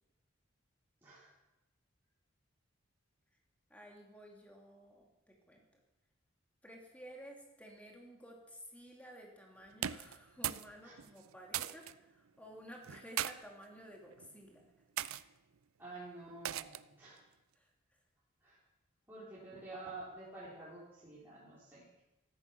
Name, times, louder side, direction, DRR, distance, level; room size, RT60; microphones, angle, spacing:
voice 1, 1.0-1.3 10.8-10.9 15.8-17.2 18.4-18.6 19.1-22.0, right 2 dB, 10° right, -10 dB, 4.2 m, -49 dB
voice 2, 3.7-5.8 6.6-14.7 17.5-18.0, equal, 5° left, 0 dB, 2.6 m, -54 dB
sound 1, 9.7-10.7 11.0-11.9 12.8-13.3 14.1-14.4 15.0-15.2 16.4-16.9, right 11 dB, 90° right, 0.5 m, -38 dB
14.5 x 14.0 x 5.9 m, 1.0 s
head